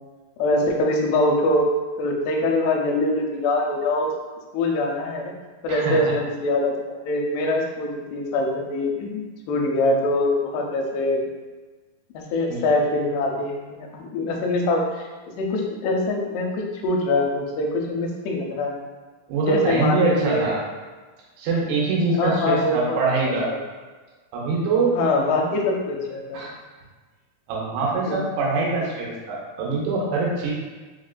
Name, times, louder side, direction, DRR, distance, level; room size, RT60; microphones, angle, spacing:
voice 1, 0.4-1.7 2.0-4.1 4.5-5.3 5.6-11.2 12.1-15.1 15.4-18.8 19.4-20.4 22.2-23.0 23.3-23.6 24.9-26.4 28.1-28.2, left 2 dB, 85° left, 0 dB, 2.6 m, -23 dB
voice 2, 19.3-20.6 21.4-23.5 24.3-25.0 26.3-26.5 27.5-30.5, right 3 dB, 90° right, -4 dB, 2.8 m, -23 dB
6.0 x 2.2 x 2.4 m, 1.3 s
omnidirectional pair, 4.6 m